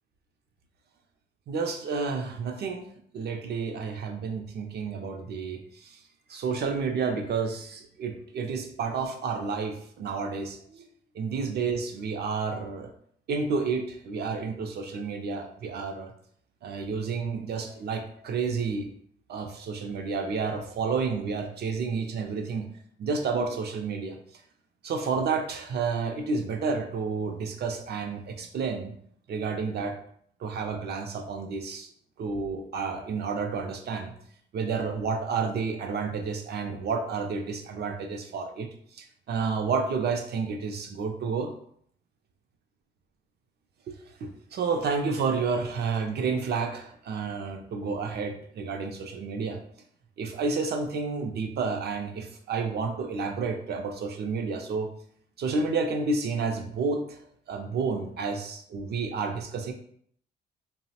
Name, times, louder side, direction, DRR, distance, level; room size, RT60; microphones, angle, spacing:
voice 1, 1.5-2.9 3.1-6.0 6.3-10.9 11.1-12.9 13.3-16.1 16.6-18.9 19.3-22.7 23.0-24.2 24.8-28.9 29.3-30.0 30.4-31.9 32.2-34.1 34.5-38.7 38.9-41.5 43.9-44.0 44.2-49.6 50.2-54.9 55.4-59.7, right 4 dB, 55° right, 4 dB, 0.4 m, -30 dB
2.9 x 2.0 x 2.8 m, 0.63 s
cardioid pair, 90°, 20 cm